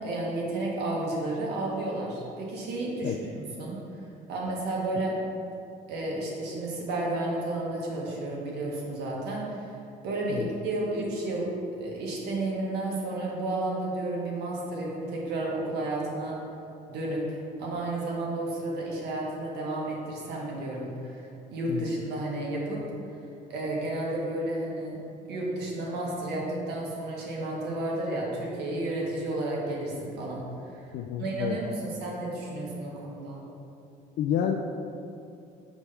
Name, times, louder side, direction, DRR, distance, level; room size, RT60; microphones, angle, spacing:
voice 1, 0.0-4.0 4.3-5.1 5.9-9.7 10.0-11.5 11.8-16.4 16.9-22.8 23.5-25.0 25.3-30.8 31.2-33.4, right 2 dB, 80° right, -3 dB, 1.4 m, -32 dB
voice 2, 30.9-31.6 34.2-34.6, left 9 dB, 65° left, 2 dB, 0.4 m, -29 dB
6.0 x 3.4 x 5.5 m, 2.6 s
cardioid pair, 110°, 17 cm